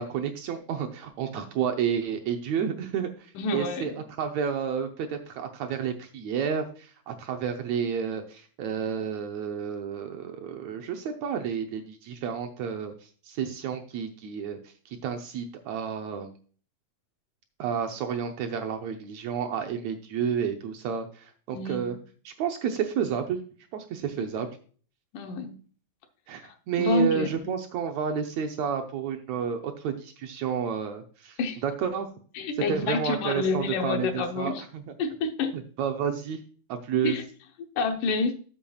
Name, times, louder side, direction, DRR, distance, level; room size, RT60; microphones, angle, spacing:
voice 1, 0.0-3.9 4.2-12.9 13.3-16.3 17.6-22.0 22.2-23.4 23.7-24.5 26.3-32.1 32.7-34.9 35.5-36.4 36.7-37.1, right 7 dB, 70° right, 4 dB, 1.8 m, -30 dB
voice 2, 3.4-4.0 21.5-22.0 24.2-24.3 25.1-25.6 26.4-27.5 31.4-31.6 32.4-34.6 35.0-35.5 37.0-37.2 37.8-38.3, left 4 dB, 75° left, 5 dB, 2.4 m, -28 dB
12.5 x 7.0 x 2.3 m, 0.42 s
omnidirectional pair, 3.8 m